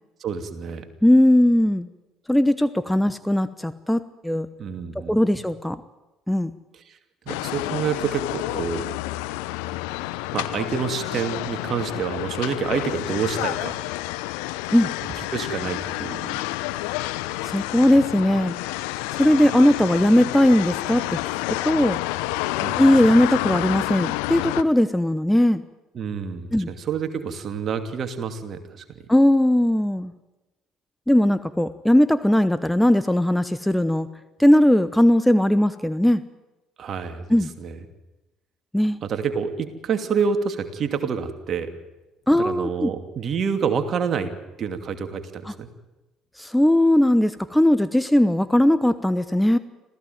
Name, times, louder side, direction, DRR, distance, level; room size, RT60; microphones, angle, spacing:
voice 1, 0.2-0.9 4.6-5.2 6.7-7.0 7.3-8.8 10.3-13.8 15.2-16.4 22.6-22.8 25.9-29.0 36.8-37.8 39.0-41.7 42.3-44.3 44.6-45.7, right 6 dB, 45° right, 7 dB, 2.7 m, -28 dB
voice 2, 1.0-1.9 2.3-4.5 4.9-5.8 6.3-6.5 14.7-14.9 17.4-18.5 19.2-21.2 21.5-22.0 22.8-25.6 26.5-26.7 29.1-30.1 31.1-34.1 34.4-36.2 37.3-37.5 38.7-39.0 42.3-42.9 45.5-45.6 46.4-49.6, left 1 dB, 5° left, 13 dB, 1.0 m, -19 dB
sound 1, 7.3-24.6, left 18 dB, 70° left, 0.8 m, -29 dB
26.5 x 16.0 x 9.3 m, 1.0 s
figure-of-eight pair, 55°, 0 cm